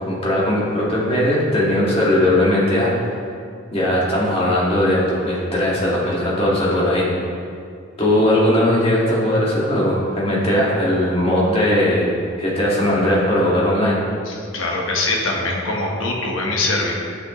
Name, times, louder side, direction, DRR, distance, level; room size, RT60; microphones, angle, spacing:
voice 1, 0.0-3.1 3.7-7.1 8.0-14.0, left 1 dB, 30° left, -6 dB, 1.8 m, -19 dB
voice 2, 14.3-16.9, left 2 dB, 70° left, -1 dB, 1.1 m, -23 dB
10.0 x 6.3 x 3.0 m, 2.3 s
head